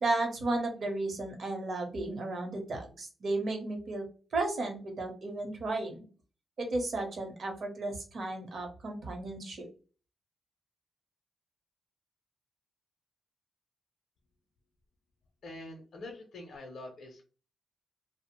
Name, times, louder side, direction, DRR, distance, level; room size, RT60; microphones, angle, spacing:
voice 1, 0.0-4.1 4.3-6.0 6.6-9.7, right 2 dB, 45° right, 3 dB, 0.8 m, -34 dB
voice 2, 15.4-17.2, left 2 dB, 55° left, 1 dB, 0.5 m, -45 dB
2.7 x 2.0 x 2.9 m, 0.37 s
wide cardioid pair, 170°, 0 cm